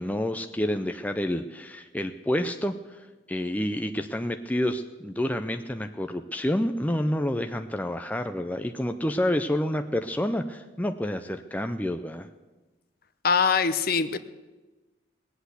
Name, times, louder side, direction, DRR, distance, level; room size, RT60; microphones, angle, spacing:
voice 1, 0.0-12.3, left 1 dB, 10° left, 7 dB, 0.5 m, -29 dB
voice 2, 13.2-14.2, left 5 dB, 45° left, 12 dB, 0.7 m, -22 dB
19.5 x 8.2 x 8.1 m, 1.2 s
head